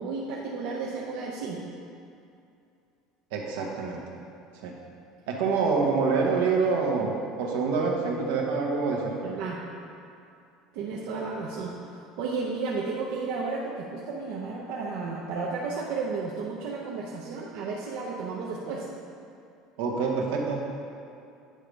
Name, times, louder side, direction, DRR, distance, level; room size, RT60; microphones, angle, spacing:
voice 1, 0.0-1.6 9.2-9.6 10.7-18.9, right 4 dB, 60° right, -4 dB, 0.7 m, -33 dB
voice 2, 3.3-4.0 4.6-4.7 5.3-9.2 19.8-20.6, right 4 dB, 80° right, -1 dB, 1.1 m, -26 dB
8.8 x 3.4 x 5.1 m, 2.5 s
cardioid pair, 175°, 0 cm